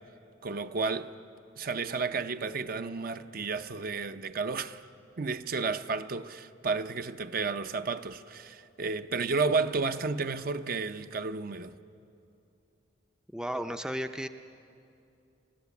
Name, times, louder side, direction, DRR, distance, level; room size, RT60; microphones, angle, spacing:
voice 1, 0.4-1.1 1.6-4.8 5.2-11.8, right 4 dB, 50° right, 0.6 m, -32 dB
voice 2, 13.3-14.3, equal, 5° right, 0.4 m, -34 dB
28.0 x 15.5 x 7.2 m
head